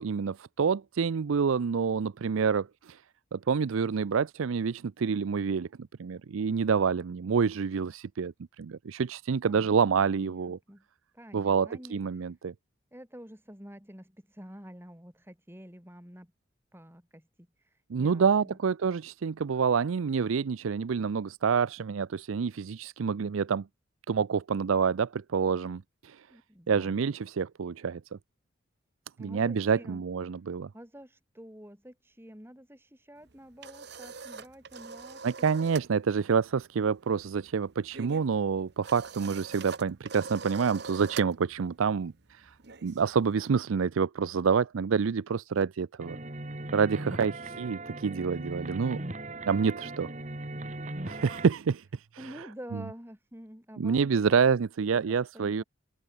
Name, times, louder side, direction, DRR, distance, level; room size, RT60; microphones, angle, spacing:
voice 1, 0.0-3.0 3.3-5.7 6.0-10.6 11.3-12.5 17.9-23.7 24.1-26.3 26.7-28.0 29.2-30.7 35.2-42.5 42.8-46.2 46.7-49.0 49.5-50.1 51.1-52.5 52.7-52.8 53.8-55.6, right 6 dB, 80° right, 0.5 m, -28 dB
voice 2, 9.4-10.9 11.1-12.0 12.9-16.3 16.7-17.5 18.0-18.6 26.3-27.0 29.2-30.0 30.7-35.2 52.2-54.4 54.8-55.6, equal, 10° right, 4.5 m, -48 dB
sound 1, 33.2-35.9 36.2-36.5 36.8-43.4, right 5 dB, 55° right, 1.1 m, -44 dB
sound 2, 46.0-51.5, right 2 dB, 35° right, 1.7 m, -38 dB
head